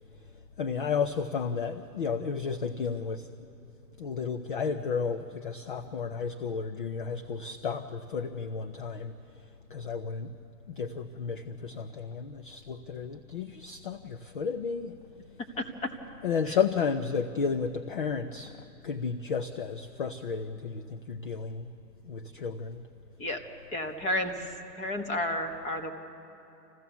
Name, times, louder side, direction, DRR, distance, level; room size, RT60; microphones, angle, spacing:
voice 1, 0.6-3.3 4.0-9.1 9.7-10.3 10.7-15.0 16.2-21.7 22.0-22.8, left 5 dB, 35° left, 10 dB, 0.4 m, -32 dB
voice 2, 15.6-15.9 16.5-16.6 23.2-23.4 23.7-24.5 24.8-25.9, left 1 dB, 15° left, 6 dB, 1.2 m, -31 dB
28.0 x 15.5 x 7.0 m, 2.9 s
hypercardioid pair, 145°, 49 cm